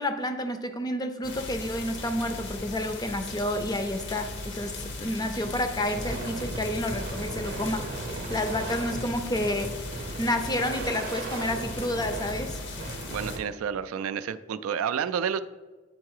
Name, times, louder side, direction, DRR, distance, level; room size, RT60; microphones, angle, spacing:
voice 1, 0.0-12.6, left 1 dB, 20° left, 8 dB, 0.5 m, -30 dB
sound 1, 1.2-13.4, left 2 dB, 60° left, 0.8 m, -38 dB
sound 2, 5.4-13.4, right 2 dB, 50° right, 0.7 m, -37 dB
voice 2, 13.1-15.4, right 7 dB, 85° right, 12 dB, 0.3 m, -30 dB
8.9 x 3.7 x 4.8 m, 1.4 s
head